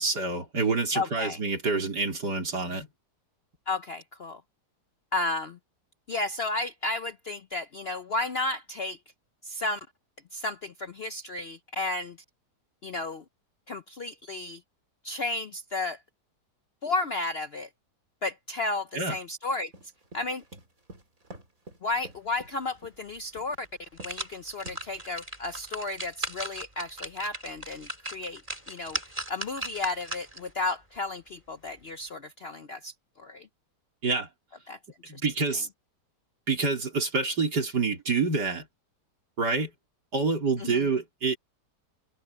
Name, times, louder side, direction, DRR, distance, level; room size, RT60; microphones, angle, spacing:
voice 1, 0.0-2.9 18.9-19.2 34.0-34.3 35.1-35.7 36.5-38.7 39.4-39.7 40.1-41.4, right 4 dB, 70° right, 4.4 m, -27 dB
voice 2, 0.9-1.4 3.7-4.4 5.1-5.6 6.1-9.0 9.4-9.8 10.3-12.2 12.8-13.2 13.7-14.6 15.0-16.0 16.8-17.7 18.2-19.7 20.1-20.4 21.8-23.7 24.0-28.4 28.7-29.0 29.3-33.5 34.7-34.8 35.1-35.2 40.6-40.9, left 2 dB, 55° left, 0.7 m, -33 dB
sound 1, 19.7-23.0 23.4-23.7 24.0-24.3 24.7-25.2, right 1 dB, 50° right, 5.1 m, -47 dB
sound 2, 23.1-23.2 23.6-30.5 30.9-31.0, right 1 dB, 20° right, 4.8 m, -38 dB
omnidirectional pair, 1.8 m